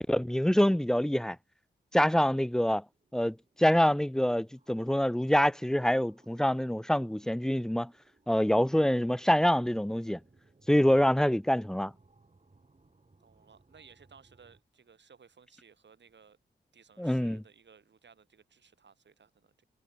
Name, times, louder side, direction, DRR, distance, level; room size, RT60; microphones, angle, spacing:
voice 1, 0.1-1.4 1.9-2.8 3.1-7.9 8.3-10.2 10.7-11.9 17.0-17.4, equal, 5° left, 0.4 m, -26 dB
sound 1, 2.9-14.6, right 3 dB, 35° right, 5.0 m, -65 dB
voice 2, 13.2-16.4 16.7-19.7, right 6 dB, 70° right, 4.4 m, -59 dB
cardioid pair, 40°, 19 cm